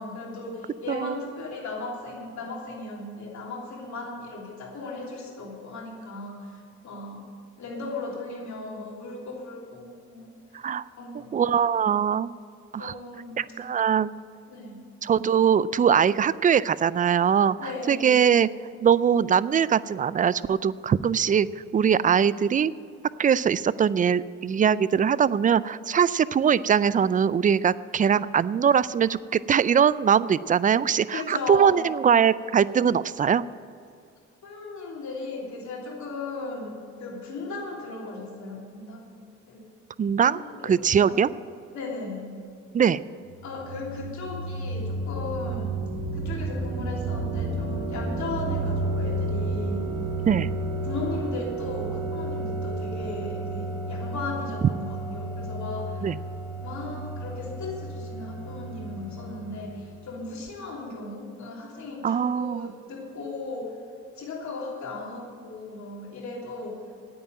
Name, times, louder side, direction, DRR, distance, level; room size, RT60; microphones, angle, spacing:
voice 1, 0.0-7.3 7.6-10.3 11.0-11.6 12.8-13.5 14.5-14.8 17.6-18.3 31.1-31.9 34.4-39.1 39.5-39.6 40.3-41.2 41.7-42.4 43.4-45.8 46.1-49.9 50.8-56.1 56.6-63.8 64.2-66.8, left 3 dB, 70° left, -2 dB, 3.2 m, -36 dB
voice 2, 10.5-10.8 11.3-12.3 12.7-12.9 13.4-14.1 15.0-18.5 18.8-21.5 21.7-22.7 23.2-33.4 40.0-41.3 42.7-43.0 50.3-50.5 56.0-56.2 62.0-62.8, right 7 dB, 30° right, 18 dB, 0.3 m, -22 dB
sound 1, 43.3-60.0, right 2 dB, 75° right, 2.3 m, -32 dB
9.5 x 8.7 x 9.2 m, 2.4 s
cardioid pair, 90°, 30 cm